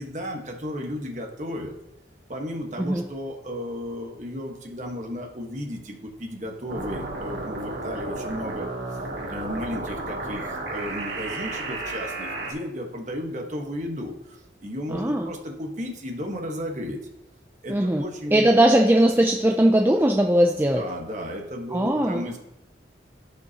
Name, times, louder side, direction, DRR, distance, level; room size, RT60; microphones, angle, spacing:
voice 1, 0.0-1.7 2.3-9.0 9.3-17.0 17.6-18.5 20.7-22.4, equal, 40° right, 1 dB, 1.3 m, -34 dB
sound 1, 6.7-12.5, right 2 dB, 70° right, 1.8 m, -33 dB
voice 2, 14.9-15.3 17.7-18.0 18.3-20.8 21.7-22.2, right 1 dB, 10° right, 2 dB, 0.4 m, -19 dB
15.0 x 5.4 x 2.9 m, 0.89 s
head